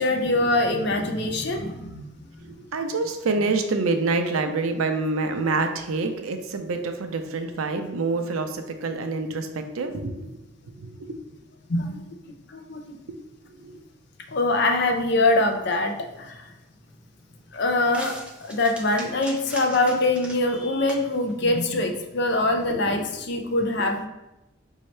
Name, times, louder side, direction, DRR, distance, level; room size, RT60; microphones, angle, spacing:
voice 1, 0.0-2.1 11.7-12.0 12.5-13.0 14.3-16.5 17.5-18.1 18.4-24.1, left 2 dB, 50° left, 4 dB, 0.5 m, -23 dB
voice 2, 2.5-10.1 10.7-11.1 13.5-13.8 22.9-23.0, right 3 dB, 80° right, 6 dB, 0.5 m, -27 dB
sound 1, 15.8-22.7, right 1 dB, 5° right, 0.4 m, -44 dB
5.4 x 2.7 x 3.2 m, 0.96 s
head